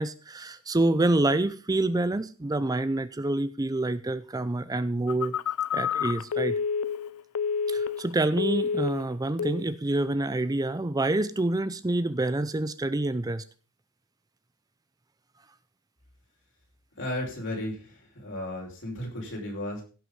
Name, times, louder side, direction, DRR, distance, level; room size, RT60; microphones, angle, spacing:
voice 1, 0.0-5.4 5.7-6.6 7.7-13.4, right 2 dB, 15° right, 13 dB, 0.5 m, -27 dB
Telephone, 5.1-8.1 8.4-9.1 9.4-9.7, left 6 dB, 85° left, 0.5 m, -29 dB
voice 2, 17.0-19.8, left 1 dB, 60° left, 0 dB, 5.4 m, -34 dB
16.0 x 6.1 x 5.4 m, 0.36 s
head